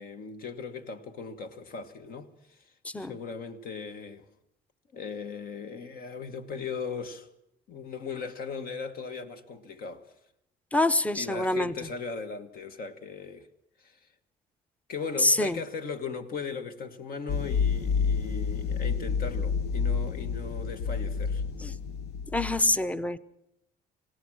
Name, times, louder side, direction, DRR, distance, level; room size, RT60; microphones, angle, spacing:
voice 1, 0.0-2.6 2.9-4.2 4.9-7.3 7.7-10.0 11.1-13.5 13.8-14.0 14.9-21.4, left 5 dB, 60° left, 1.6 m, -38 dB
voice 2, 10.7-11.7 15.2-15.6 21.6-21.7 22.3-23.2, left 2 dB, 10° left, 0.7 m, -25 dB
sound 1, 17.3-22.6, left 6 dB, 75° left, 0.9 m, -29 dB
26.5 x 17.5 x 6.3 m
cardioid pair, 110°, 17 cm